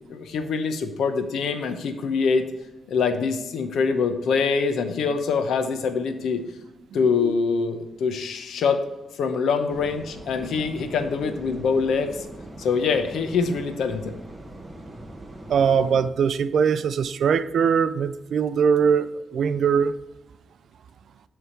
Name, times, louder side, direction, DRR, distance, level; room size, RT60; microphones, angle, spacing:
voice 1, 0.1-2.5 2.9-6.4 6.9-8.8 9.2-12.2 12.6-14.0, left 5 dB, 85° left, 0.9 m, -24 dB
sound 1, 9.7-16.1, right 1 dB, 15° right, 1.0 m, -41 dB
voice 2, 15.5-20.0, right 7 dB, 70° right, 0.4 m, -21 dB
10.0 x 3.5 x 4.4 m
cardioid pair, 105°, 0 cm